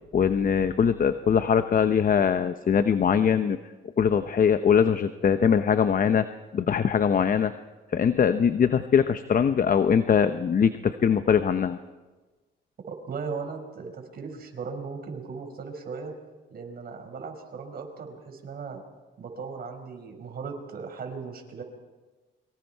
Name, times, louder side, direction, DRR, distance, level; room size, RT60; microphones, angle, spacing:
voice 1, 0.1-3.6 4.0-6.3 6.5-7.5 7.9-11.8, left 7 dB, 45° left, 11 dB, 0.8 m, -22 dB
voice 2, 12.9-16.1 16.5-18.8 19.2-21.6, right 5 dB, 50° right, 3 dB, 5.5 m, -37 dB
29.5 x 24.0 x 4.6 m, 1.2 s
cardioid pair, 90°, 20 cm